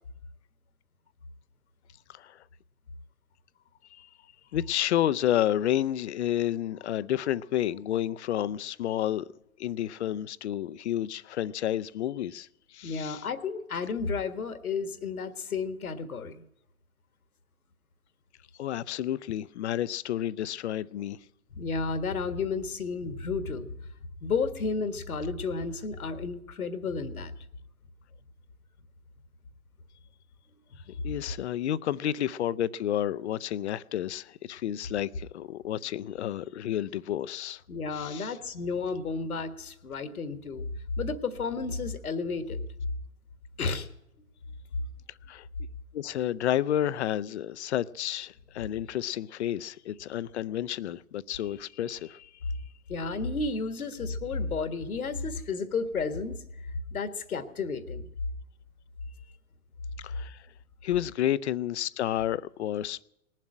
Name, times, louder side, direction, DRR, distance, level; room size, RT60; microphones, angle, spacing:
voice 1, 2.1-2.4 3.9-4.1 4.5-9.3 9.6-13.2 18.6-21.2 31.0-37.6 37.9-38.4 45.3-45.5 45.9-52.3 60.0-60.4 60.8-63.0, left 11 dB, 50° left, 0.6 m, -30 dB
voice 2, 12.8-16.4 21.5-23.7 24.2-27.3 37.7-40.7 41.0-42.6 43.6-43.9 52.9-56.4 56.9-58.1, left 4 dB, 75° left, 1.7 m, -32 dB
19.0 x 7.5 x 9.7 m
figure-of-eight pair, 120°, 44 cm